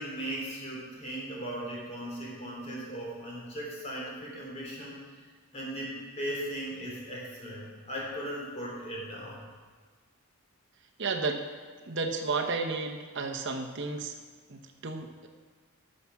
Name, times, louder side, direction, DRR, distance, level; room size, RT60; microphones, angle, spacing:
voice 1, 0.0-5.0 5.5-9.4, right 1 dB, 30° left, -4 dB, 3.1 m, -38 dB
voice 2, 11.0-11.5 11.8-14.1 14.5-15.3, right 4 dB, 55° right, 3 dB, 0.8 m, -32 dB
12.0 x 7.1 x 5.8 m, 1.5 s
head